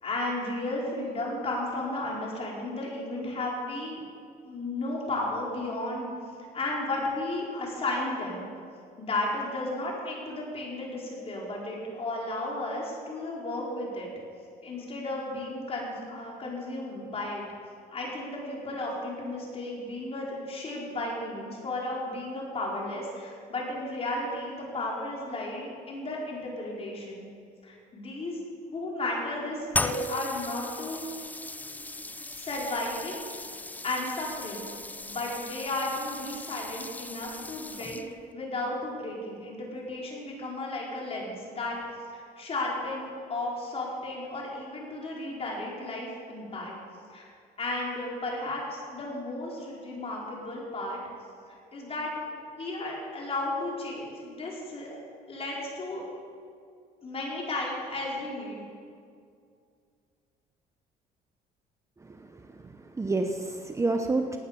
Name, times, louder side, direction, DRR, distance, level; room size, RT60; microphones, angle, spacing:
voice 1, 0.0-4.0 4.4-6.1 6.5-8.5 9.0-14.1 14.6-17.4 17.9-27.3 27.6-28.4 28.7-31.1 32.3-33.2 33.8-34.7 35.0-38.1 38.3-41.8 42.1-46.7 47.1-47.3 47.6-51.0 51.5-52.2 52.6-56.1 57.0-58.6, left 2 dB, 35° left, -3 dB, 5.0 m, -34 dB
sound 1, 29.7-38.3, left 2 dB, 10° left, 0.5 m, -37 dB
voice 2, 62.0-62.6 62.9-64.4, right 3 dB, 15° right, 5 dB, 0.9 m, -29 dB
18.0 x 9.4 x 7.1 m, 2.3 s
cardioid pair, 110°, 17 cm